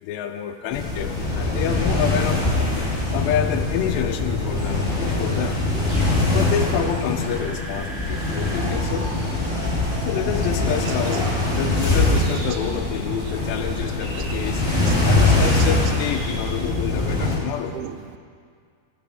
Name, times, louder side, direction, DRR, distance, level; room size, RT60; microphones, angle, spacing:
voice 1, 0.0-2.7 3.1-5.6 6.3-9.1 10.0-14.6 15.1-17.8, left 9 dB, 80° left, 7 dB, 2.7 m, -28 dB
sound 1, 0.7-17.4, left 2 dB, 25° left, 1.5 m, -23 dB
sound 2, 4.6-16.7, right 2 dB, 45° right, 2.8 m, -38 dB
voice 2, 10.6-12.6 13.1-13.2 13.7-13.8 14.1-14.6 14.8-15.3 15.8-16.2 17.2-17.4 17.7-18.2, right 11 dB, 85° right, 10 dB, 2.2 m, -37 dB
14.5 x 12.5 x 3.4 m, 2.1 s
omnidirectional pair, 5.1 m